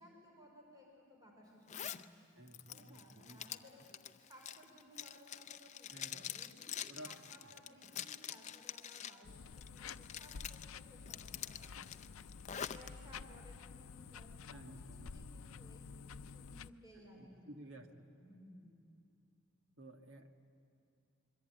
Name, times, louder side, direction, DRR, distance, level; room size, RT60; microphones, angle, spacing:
voice 1, 0.0-3.8 4.2-12.1 12.7-19.1, equal, 20° right, -1 dB, 4.9 m, -60 dB
Zipper (clothing), 1.7-2.0 2.5-9.2 9.6-10.7 11.1-12.9, left 9 dB, 35° left, 0.5 m, -46 dB
voice 2, 2.4-3.6 5.9-6.3 6.9-7.5 14.5-15.3 17.0-18.0 19.8-20.3, right 1 dB, 70° right, 5 dB, 1.8 m, -55 dB
sound 1, 9.2-16.7, left 5 dB, 90° left, 0.6 m, -51 dB
26.0 x 23.0 x 9.2 m, 2.7 s
head